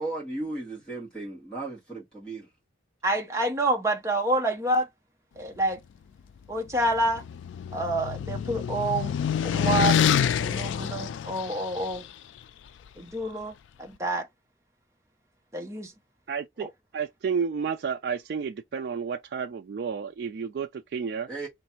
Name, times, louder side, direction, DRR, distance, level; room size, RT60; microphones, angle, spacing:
voice 1, 0.0-2.5 21.3-21.5, right 2 dB, 5° left, 1.5 m, -35 dB
voice 2, 3.0-4.9 5.4-5.8 6.5-7.2 7.7-9.1 9.4-10.0 10.4-12.0 13.0-13.5 13.8-14.3 15.5-15.9, right 1 dB, 15° right, 0.7 m, -27 dB
sound 1, 6.7-12.0, left 8 dB, 80° left, 0.3 m, -27 dB
voice 3, 16.3-21.3, right 6 dB, 60° right, 0.3 m, -31 dB
3.2 x 2.6 x 4.3 m
head